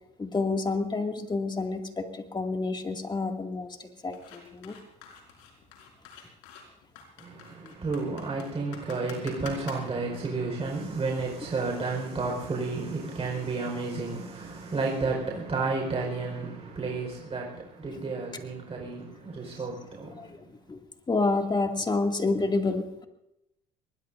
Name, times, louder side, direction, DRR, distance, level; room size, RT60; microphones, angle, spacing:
voice 1, 0.2-4.8 17.9-18.0 20.1-20.8 21.1-23.1, left 3 dB, 20° left, 2.4 m, -29 dB
sound 1, 4.1-10.3, left 7 dB, 80° left, 4.7 m, -47 dB
voice 2, 7.2-20.4, right 3 dB, 30° right, 4.8 m, -32 dB
23.0 x 20.5 x 2.7 m
supercardioid pair, 85°, 20 cm